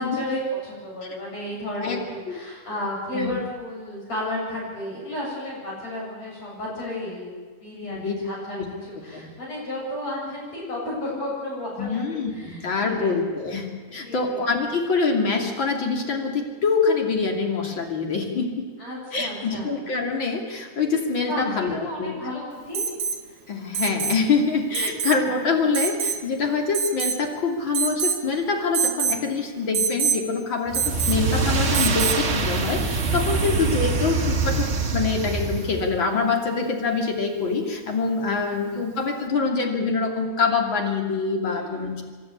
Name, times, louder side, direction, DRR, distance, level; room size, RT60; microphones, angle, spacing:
voice 1, 0.0-13.1 14.0-14.4 18.8-19.7 21.3-22.9 24.8-25.3 38.5-38.8 41.5-41.9, left 1 dB, 55° left, -4 dB, 9.0 m, -33 dB
voice 2, 1.8-2.3 3.1-3.3 7.8-8.1 9.1-9.3 11.8-18.7 19.1-22.1 23.5-42.0, left 4 dB, 40° left, 2 dB, 3.2 m, -25 dB
Alarm, 22.7-23.2 23.7-24.2 24.7-25.2 25.7-26.2 26.7-27.3 27.7-28.2 28.7-29.2 29.7-30.2 30.7-31.2 31.7-32.2 34.0-34.1, right 7 dB, 70° right, 2.3 m, -25 dB
sound 1, 30.7-36.0, right 3 dB, 45° right, 0.9 m, -24 dB
26.5 x 12.5 x 9.8 m, 1.5 s
omnidirectional pair, 3.7 m